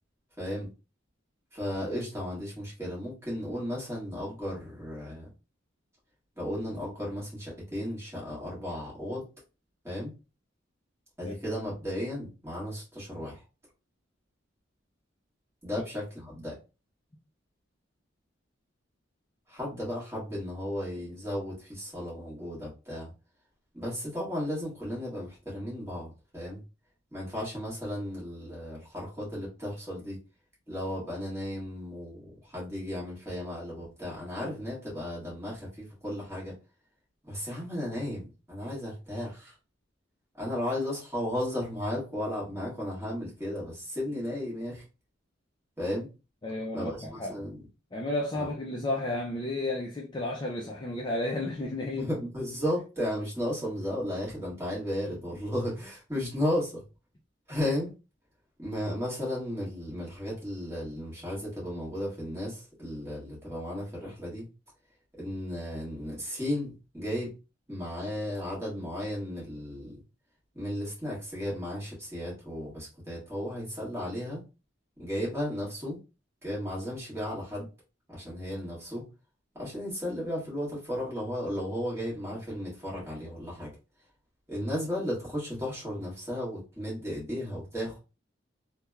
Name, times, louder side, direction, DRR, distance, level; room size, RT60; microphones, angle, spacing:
voice 1, 0.4-0.7 1.5-5.3 6.4-9.2 9.8-10.1 11.2-13.4 15.6-16.5 19.5-23.1 23.7-26.6 27.1-30.2 30.7-36.6 37.2-39.5 40.4-44.8 45.8-46.1 46.7-47.6 48.3-48.5 51.9-56.8 57.5-57.9 58.6-64.4 65.2-67.3 67.7-70.0 70.5-74.4 75.0-76.0 76.4-77.7 78.1-79.0 79.5-83.7 84.5-88.0, left 1 dB, 15° right, 1.4 m, -34 dB
voice 2, 46.4-47.5 47.9-52.1, left 2 dB, 25° left, 0.3 m, -32 dB
3.2 x 2.1 x 2.3 m
head